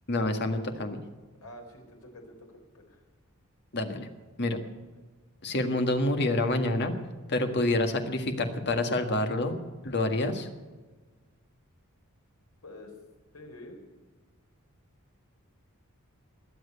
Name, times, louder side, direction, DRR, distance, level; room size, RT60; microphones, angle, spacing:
voice 1, 0.1-1.0 3.7-4.1 4.4-4.6 5.4-6.9 7.3-9.5 9.8-10.5, left 2 dB, 50° left, 6 dB, 1.7 m, -27 dB
voice 2, 1.4-3.0 12.6-12.9 13.3-13.8, left 1 dB, 80° left, 2 dB, 4.1 m, -47 dB
21.0 x 7.8 x 8.3 m, 1.3 s
head